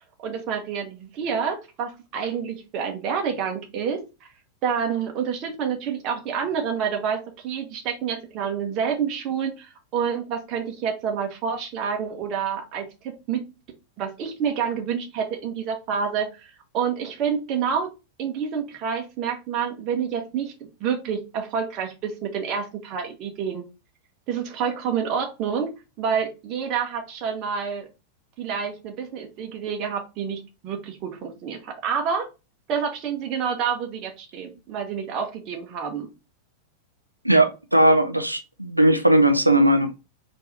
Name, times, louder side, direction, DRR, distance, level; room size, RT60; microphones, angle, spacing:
voice 1, 0.2-4.3 4.6-13.4 14.0-17.9 18.2-23.6 24.3-25.7 26.0-27.9 28.4-32.3 32.7-36.1, right 7 dB, 40° right, 1.1 m, -28 dB
voice 2, 37.2-39.9, right 1 dB, 90° right, 0.5 m, -18 dB
4.5 x 2.9 x 3.3 m
figure-of-eight pair, 90°, 0 cm